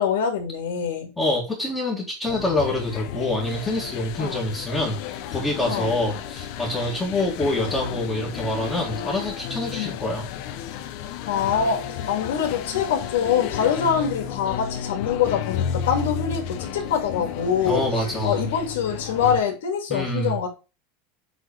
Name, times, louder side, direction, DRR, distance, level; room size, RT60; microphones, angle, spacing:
voice 1, 0.0-1.1 4.2-4.4 5.7-5.9 9.7-10.0 11.3-17.8 18.2-20.5, left 7 dB, 90° left, 3 dB, 2.4 m, -24 dB
voice 2, 1.2-10.2 17.6-18.5 19.9-20.4, left 1 dB, 10° left, -5 dB, 2.0 m, -26 dB
sound 1, 2.3-19.4, left 9 dB, 50° left, 0.9 m, -32 dB
8.0 x 3.9 x 5.1 m, 0.30 s
supercardioid pair, 160°, 0 cm